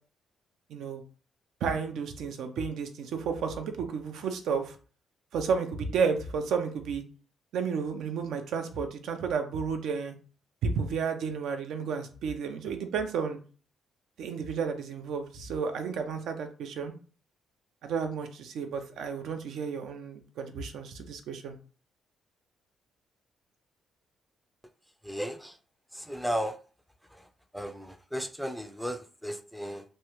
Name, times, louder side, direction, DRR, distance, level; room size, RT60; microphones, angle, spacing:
voice 1, 0.7-1.0 1.6-4.8 5.3-7.0 7.5-10.1 10.6-13.4 14.2-16.9 17.8-21.6, right 5 dB, 75° right, 0.5 m, -32 dB
voice 2, 25.0-25.6 25.9-26.6 27.1-27.3 27.5-29.8, equal, ahead, 0.4 m, -35 dB
3.1 x 2.3 x 3.0 m
cardioid pair, 90°, 0 cm